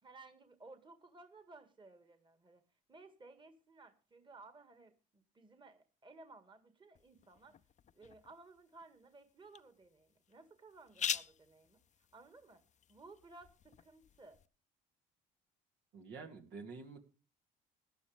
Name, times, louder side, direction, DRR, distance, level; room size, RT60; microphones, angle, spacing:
voice 1, 0.0-2.6 2.9-7.6 7.9-12.6 12.9-14.4, right 3 dB, 25° right, 8 dB, 1.9 m, -58 dB
sound 1, 7.0-14.5, left 9 dB, 40° left, 0.6 m, -46 dB
voice 2, 15.9-17.0, right 4 dB, 75° right, 3 dB, 2.6 m, -48 dB
17.0 x 11.0 x 3.4 m, 0.34 s
supercardioid pair, 80°, 19 cm